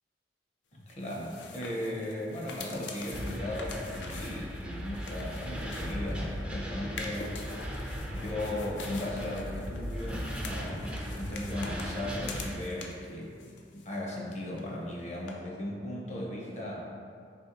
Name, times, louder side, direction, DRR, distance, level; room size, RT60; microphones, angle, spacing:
voice 1, 0.7-7.7 8.1-13.4 13.7-16.8, left 1 dB, 40° left, -3 dB, 0.6 m, -37 dB
sound 1, 0.9-6.4 6.8-13.1 13.4-14.3 14.5-14.6 15.3-15.4, left 3 dB, 85° left, 0.4 m, -45 dB
sound 2, 3.1-12.6, equal, 5° right, 0.3 m, -37 dB
4.3 x 3.1 x 2.5 m, 2.3 s
head